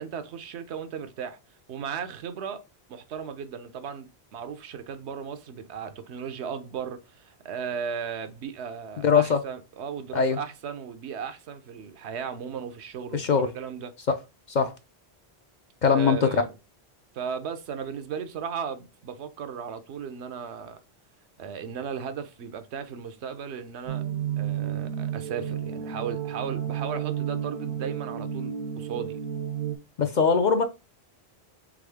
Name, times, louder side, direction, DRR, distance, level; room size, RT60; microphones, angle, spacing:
voice 1, 0.0-1.4 1.7-2.6 2.9-13.9 15.9-16.5 17.1-20.8 21.4-24.0 24.4-29.2, right 7 dB, 85° right, 0.9 m, -36 dB
voice 2, 9.0-9.4 10.1-10.4 13.1-13.5 14.5-14.8 15.8-16.4 30.0-30.6, left 5 dB, 55° left, 0.5 m, -21 dB
sound 1, 23.9-29.8, right 9 dB, 60° right, 0.6 m, -31 dB
3.7 x 3.5 x 3.4 m
omnidirectional pair, 1.1 m